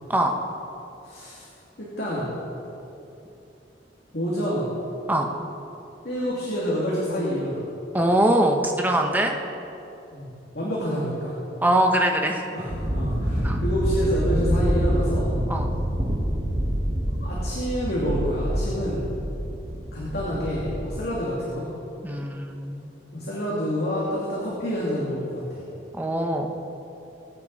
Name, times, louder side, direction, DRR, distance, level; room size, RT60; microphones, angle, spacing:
voice 1, 1.0-1.5 1.8-2.3 4.1-4.7 6.0-7.6 10.1-10.3 10.5-11.3 12.5-15.3 17.0-19.1 19.9-21.7 23.1-25.6, equal, 60° left, -6 dB, 2.5 m, -28 dB
voice 2, 7.9-9.3 11.6-12.4 13.4-13.6 15.5-15.7 22.0-23.1 25.9-26.5, right 1 dB, 10° right, 2 dB, 1.0 m, -22 dB
sound 1, 12.7-21.0, equal, 40° right, 1.7 m, -26 dB
21.5 x 9.2 x 4.1 m, 2.9 s
head